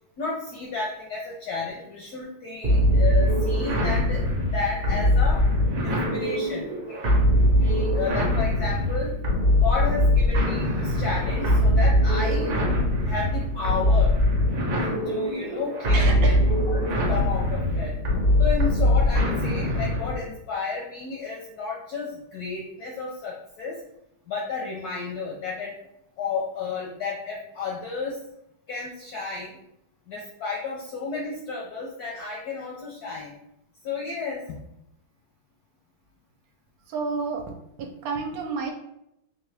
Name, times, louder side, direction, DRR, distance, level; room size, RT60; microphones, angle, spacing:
voice 1, 0.2-5.4 5.8-7.0 7.6-9.1 9.5-12.6 13.0-14.1 14.9-16.3 16.9-17.9 18.4-23.8 24.3-25.8 26.2-28.2 28.7-29.6 30.1-33.3 33.8-34.6, left 4 dB, 75° left, -3 dB, 0.9 m, -32 dB
sound 1, 2.6-20.2, left 1 dB, 55° right, 1.0 m, -22 dB
voice 2, 15.9-16.5 36.9-37.5 37.8-38.7, right 4 dB, 75° right, 2 dB, 1.4 m, -30 dB
3.7 x 2.8 x 3.3 m, 0.80 s
omnidirectional pair, 2.3 m